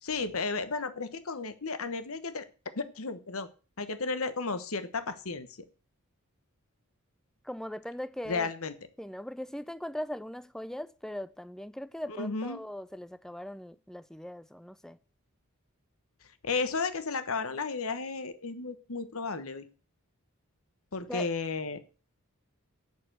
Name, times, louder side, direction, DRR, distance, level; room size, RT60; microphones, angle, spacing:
voice 1, 0.0-2.5 2.8-3.5 3.8-5.5 8.3-8.7 12.1-12.6 16.4-19.6 20.9-21.8, left 4 dB, 70° left, 1.1 m, -33 dB
voice 2, 7.4-8.5 9.0-15.0 21.1-21.3, left 1 dB, ahead, 0.4 m, -40 dB
8.6 x 6.7 x 7.7 m
head